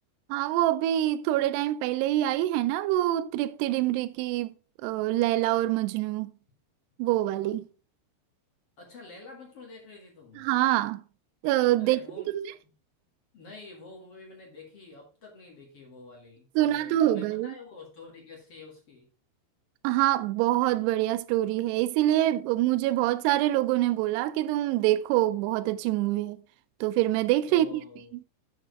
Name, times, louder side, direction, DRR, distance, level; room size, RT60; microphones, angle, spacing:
voice 1, 0.3-4.5 4.8-6.3 7.0-7.7 10.4-11.0 11.4-12.0 12.3-12.5 16.6-17.5 19.8-26.4 26.8-27.8, right 14 dB, 85° right, 2.4 m, -25 dB
voice 2, 8.8-10.5 11.8-12.7 13.3-19.1 27.5-28.1, left 3 dB, 50° left, 1.8 m, -48 dB
7.5 x 6.2 x 4.6 m
omnidirectional pair, 5.3 m